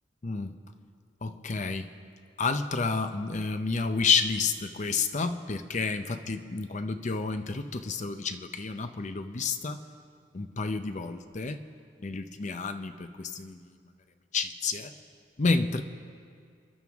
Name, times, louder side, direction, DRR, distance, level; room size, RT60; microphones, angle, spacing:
voice 1, 0.2-0.5 1.2-1.9 2.4-9.8 10.3-11.6 12.0-13.7 14.3-14.9 15.4-15.8, left 4 dB, 40° left, 9 dB, 0.6 m, -30 dB
29.5 x 11.0 x 3.6 m, 2.2 s
head